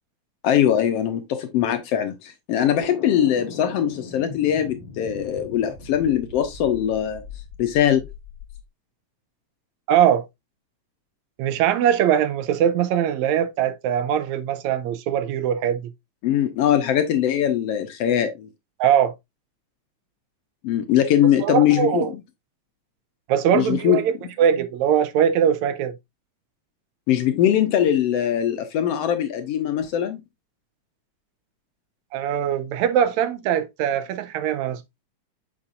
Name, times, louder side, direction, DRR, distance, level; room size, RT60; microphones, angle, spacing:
voice 1, 0.4-7.2 7.6-8.0 16.2-18.5 20.6-22.2 23.5-24.0 27.1-30.2, left 10 dB, 70° left, 1.6 m, -21 dB
sound 1, 2.5-8.6, left 5 dB, 55° left, 1.4 m, -39 dB
voice 2, 9.9-10.2 11.4-15.9 18.8-19.1 21.4-22.1 23.3-25.9 32.1-34.8, right 9 dB, 85° right, 2.0 m, -21 dB
7.0 x 5.8 x 2.5 m
omnidirectional pair, 3.3 m